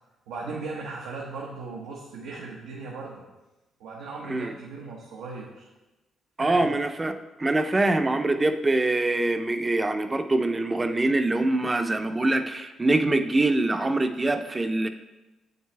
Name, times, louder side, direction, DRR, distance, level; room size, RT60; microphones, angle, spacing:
voice 1, 0.3-3.2 3.8-5.7 6.4-6.7, right 3 dB, 90° right, -3 dB, 1.2 m, -37 dB
voice 2, 6.4-14.9, right 2 dB, 20° right, 8 dB, 0.6 m, -24 dB
8.1 x 6.7 x 3.3 m, 1.0 s
cardioid pair, 90°, 0 cm